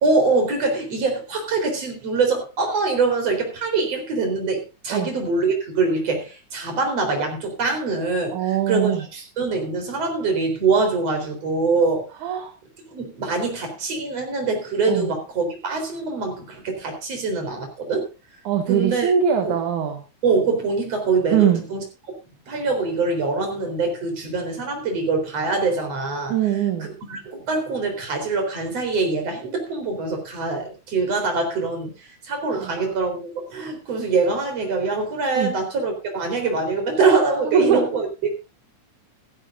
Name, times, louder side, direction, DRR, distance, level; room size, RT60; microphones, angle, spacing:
voice 1, 0.0-12.1 12.9-18.1 18.7-19.1 19.4-19.6 20.2-21.8 22.5-26.4 27.1-38.3, right 3 dB, 55° right, 4 dB, 5.1 m, -24 dB
voice 2, 8.3-9.0 12.2-12.5 14.9-15.1 18.5-20.0 21.3-21.6 26.3-26.9 32.5-32.8 35.4-35.5 37.5-37.8, right 9 dB, 75° right, 4 dB, 3.0 m, -22 dB
15.5 x 15.5 x 2.6 m, 0.28 s
omnidirectional pair, 3.5 m